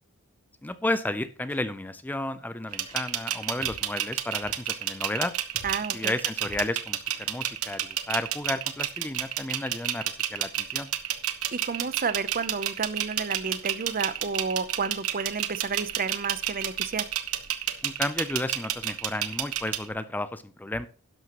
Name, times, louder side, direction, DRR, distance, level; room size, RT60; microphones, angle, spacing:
voice 1, 0.6-5.3 5.9-10.9 17.8-20.9, left 1 dB, 10° left, 13 dB, 0.4 m, -32 dB
sound 1, 1.5-1.6 2.9-3.0 3.6-3.8 4.3-4.4 5.5-5.8 6.4-6.7 7.1-7.2, equal, 25° left, 4.9 m, -45 dB
sound 2, 2.7-19.9, right 11 dB, 70° right, 1.1 m, -30 dB
voice 2, 5.6-6.1 11.5-17.1, right 5 dB, 40° right, 15 dB, 0.6 m, -31 dB
12.0 x 11.0 x 3.0 m, 0.39 s
head